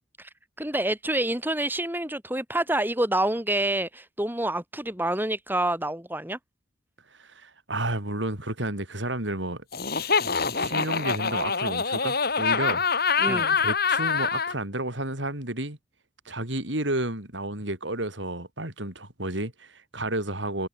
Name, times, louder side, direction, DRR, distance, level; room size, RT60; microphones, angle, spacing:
voice 1, 0.6-6.4 13.2-13.5, right 1 dB, 10° right, 6.0 m, -27 dB
voice 2, 7.2-9.6 10.0-12.8 13.3-15.8 16.2-20.7, right 1 dB, 70° right, 7.9 m, -31 dB
Laughter, 9.7-14.5, left 5 dB, 55° left, 4.3 m, -25 dB
head